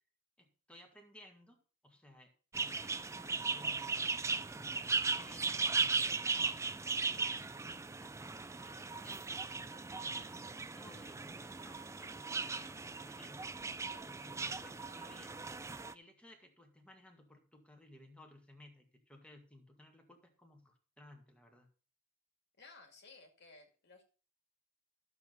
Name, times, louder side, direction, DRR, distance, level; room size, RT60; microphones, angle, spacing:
voice 1, 0.4-2.3 2.6-4.5 4.9-5.6 6.0-6.5 6.8-13.5 14.1-15.4 15.9-21.7, left 1 dB, 5° left, 2 dB, 1.9 m, -60 dB
sound 1, 2.5-15.9, right 4 dB, 15° right, 0.4 m, -37 dB
voice 2, 13.8-14.2 22.6-24.0, left 3 dB, 55° left, 3 dB, 2.4 m, -58 dB
13.0 x 7.2 x 4.1 m, 0.38 s
head